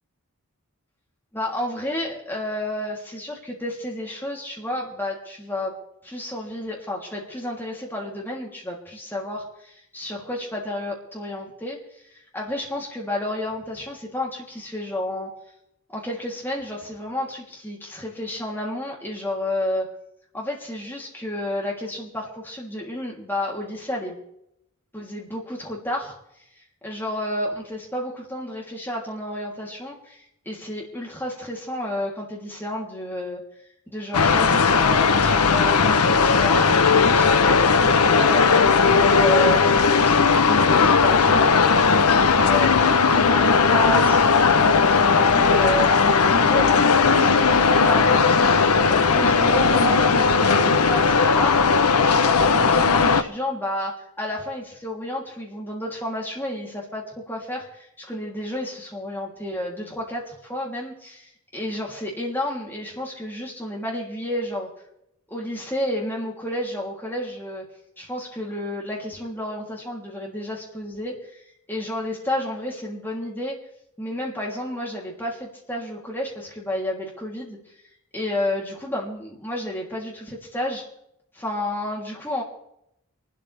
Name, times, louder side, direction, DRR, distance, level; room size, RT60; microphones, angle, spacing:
voice 1, 1.3-5.7 6.0-15.3 15.9-19.8 20.3-24.2 24.9-26.2 26.8-33.4 33.9-36.7 37.0-38.7 39.0-41.8 42.3-45.9 46.3-51.5 51.9-64.7 65.3-67.6 68.0-71.4 71.7-73.5 74.0-77.6 78.1-80.8 81.3-82.4, left 1 dB, 10° left, -2 dB, 3.2 m, -31 dB
sound 1, 34.1-53.2, left 5 dB, 85° left, 0.9 m, -17 dB
25.0 x 12.5 x 3.5 m, 0.78 s
head